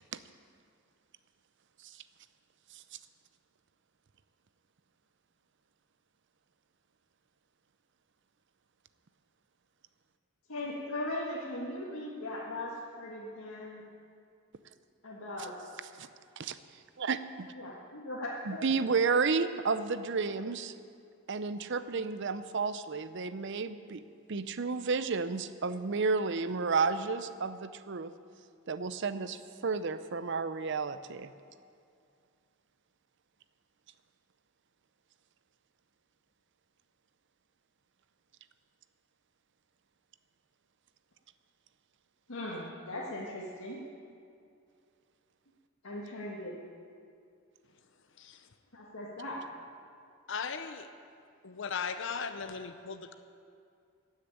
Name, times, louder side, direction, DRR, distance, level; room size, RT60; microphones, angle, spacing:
voice 1, 10.5-13.8 15.0-15.5 17.5-18.7 42.3-43.8 45.8-46.6 48.7-49.4, left 1 dB, 90° left, -5 dB, 1.7 m, -39 dB
voice 2, 17.0-17.5 18.5-20.7 21.3-24.0 24.3-28.1 28.7-31.3, right 4 dB, 55° right, 12 dB, 0.6 m, -31 dB
voice 3, 50.3-50.9 51.4-53.1, left 6 dB, 60° left, 9 dB, 0.7 m, -37 dB
15.0 x 6.7 x 10.0 m, 2.4 s
head